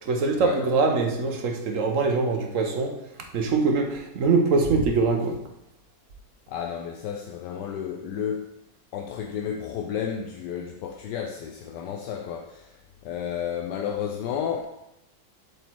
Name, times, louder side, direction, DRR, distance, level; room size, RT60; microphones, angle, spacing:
voice 1, 0.0-3.0 3.3-5.4, right 4 dB, 50° right, 3 dB, 1.2 m, -23 dB
voice 2, 6.5-8.5 8.9-14.7, left 8 dB, 75° left, 3 dB, 1.2 m, -32 dB
7.9 x 4.0 x 4.6 m, 0.84 s
omnidirectional pair, 1.9 m